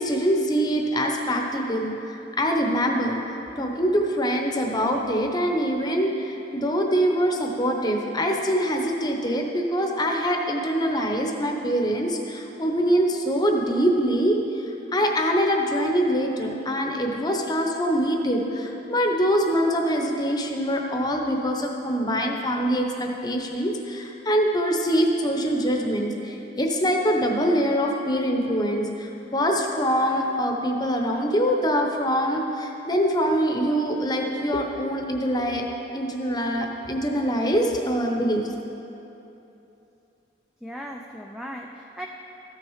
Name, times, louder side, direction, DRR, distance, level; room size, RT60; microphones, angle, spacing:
voice 1, 0.0-3.2 3.6-35.6 35.9-38.4, equal, 20° left, 2 dB, 0.8 m, -24 dB
voice 2, 40.6-42.1, equal, ahead, 1 dB, 0.4 m, -37 dB
13.5 x 6.4 x 4.7 m, 2.9 s
head